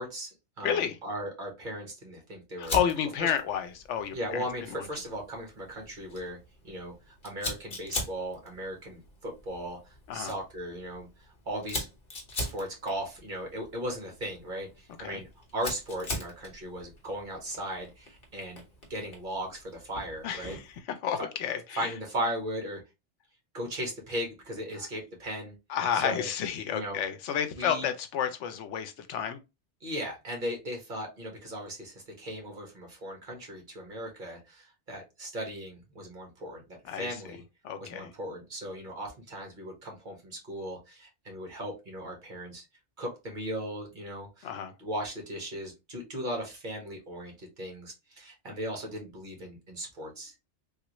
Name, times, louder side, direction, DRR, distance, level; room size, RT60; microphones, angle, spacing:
voice 1, 0.0-2.8 3.2-3.3 4.1-6.4 6.6-11.9 12.4-18.6 18.9-20.6 21.2-21.3 21.8-22.8 23.5-25.5 25.9-26.3 26.7-27.0 27.6-27.9 29.8-37.4 37.8-42.6 43.0-44.5 44.8-50.4, equal, 45° right, 1.3 m, -37 dB
voice 2, 0.6-1.0 2.6-4.4 4.7-4.9 10.1-10.3 15.0-15.2 20.2-21.9 25.7-29.4 36.9-37.1 37.6-38.1 44.4-44.7, left 8 dB, 85° left, 0.9 m, -31 dB
Fire, 2.6-20.8, left 2 dB, 55° left, 1.2 m, -42 dB
3.5 x 2.5 x 2.9 m
omnidirectional pair, 1.2 m